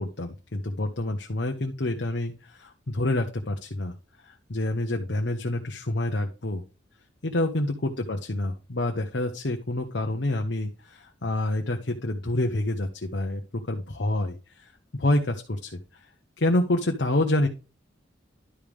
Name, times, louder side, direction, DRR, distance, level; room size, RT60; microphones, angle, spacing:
voice 1, 0.0-4.0 4.2-6.6 7.2-15.4 15.9-16.1 16.4-17.5, left 1 dB, 70° left, 2 dB, 1.0 m, -27 dB
11.5 x 5.2 x 3.5 m, 0.32 s
head